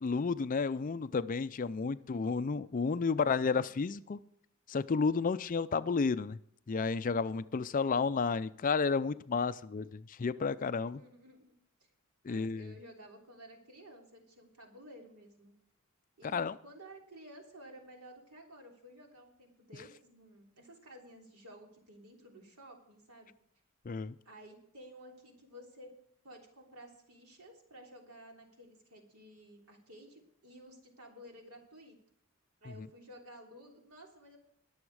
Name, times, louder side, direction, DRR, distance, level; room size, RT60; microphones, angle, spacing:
voice 1, 0.0-4.2 4.7-6.4 6.7-11.0 12.2-12.7 16.3-16.5 23.9-24.1, left 5 dB, 40° left, 0.4 m, -31 dB
voice 2, 1.7-2.2 2.8-3.8 5.2-5.4 10.8-11.5 11.8-11.9 12.3-15.5 16.2-23.3 24.2-25.9 26.2-32.0 32.6-34.4, equal, 85° right, 3.3 m, -54 dB
21.5 x 7.2 x 4.8 m
head